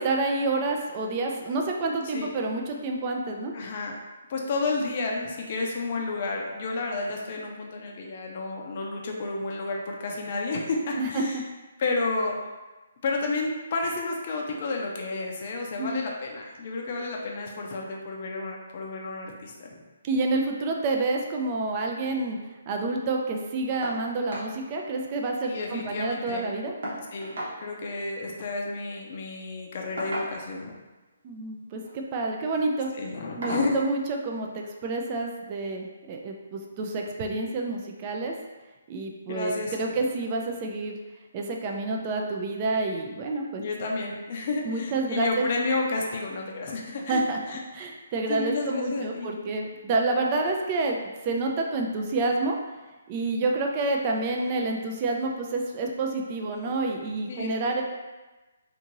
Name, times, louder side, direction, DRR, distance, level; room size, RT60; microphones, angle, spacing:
voice 1, 0.0-3.5 11.0-11.2 15.8-16.0 20.0-22.4 22.7-26.7 31.2-32.9 33.4-38.3 38.9-41.0 41.3-43.6 44.7-45.5 47.1-47.4 47.7-51.0 51.2-52.6 53.1-57.8, right 3 dB, 30° right, 1 dB, 0.4 m, -28 dB
voice 2, 3.5-4.0 4.3-11.4 11.8-12.3 13.0-19.8 25.4-26.5 27.1-30.8 32.9-33.8 39.3-40.0 43.6-47.2 47.5-47.6 48.3-49.3 57.3-57.8, left 3 dB, 45° left, 0 dB, 0.4 m, -31 dB
sound 1, 23.8-24.0 24.3-24.5 24.9-25.0 25.3-26.0 26.8-27.6 28.8-29.0 30.0-30.6 31.7-32.0 32.4-32.6 33.4-33.7 35.0-35.1 35.6-35.7, right 1 dB, 65° right, 0.9 m, -35 dB
2.6 x 2.5 x 2.9 m, 1.2 s
hypercardioid pair, 150°, 0 cm